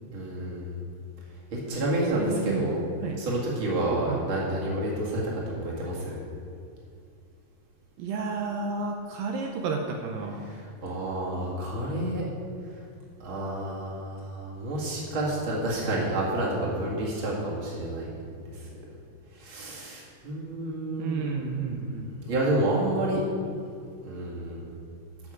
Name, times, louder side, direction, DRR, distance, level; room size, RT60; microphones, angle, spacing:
voice 1, 0.1-0.7 1.5-2.8 3.2-6.2 10.4-12.2 13.2-18.1 18.4-18.5 19.4-21.4 21.9-23.2 24.0-24.6, right 1 dB, 40° right, -4 dB, 2.6 m, -29 dB
voice 2, 2.1-3.2 4.1-4.3 8.0-10.4 21.0-22.1, right 4 dB, 80° right, 1 dB, 2.4 m, -31 dB
15.0 x 6.3 x 4.9 m, 2.3 s
omnidirectional pair, 4.1 m